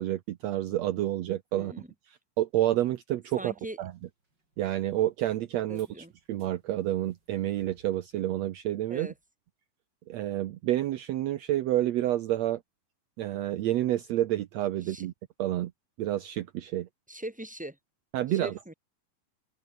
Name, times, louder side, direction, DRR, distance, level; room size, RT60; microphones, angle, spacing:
voice 1, 0.0-1.7 2.4-3.5 3.8-3.9 4.6-5.9 6.3-9.1 10.1-12.6 13.2-15.1 15.4-15.7 16.0-16.9 18.1-18.5, right 13 dB, 75° right, 1.6 m, -29 dB
voice 2, 1.6-1.9 3.4-3.8 5.7-6.1 8.9-9.1 14.8-15.1 17.1-17.8 18.3-18.7, right 1 dB, ahead, 4.2 m, -40 dB
sound 1, 3.5-9.3, right 2 dB, 30° right, 7.1 m, -66 dB
open air
omnidirectional pair, 4.1 m